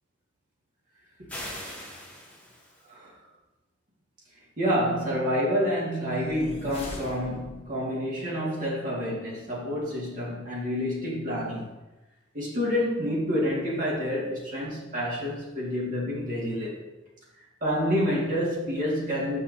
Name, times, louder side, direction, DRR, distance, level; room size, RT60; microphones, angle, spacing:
sound 1, 1.3-2.9, left 1 dB, 10° left, 1.9 m, -40 dB
voice 1, 4.6-11.7 12.3-16.8 17.6-19.4, equal, 45° right, -5 dB, 1.9 m, -28 dB
sound 2, 6.1-7.9, left 1 dB, 30° left, 1.1 m, -42 dB
8.0 x 5.7 x 2.7 m, 1.0 s
head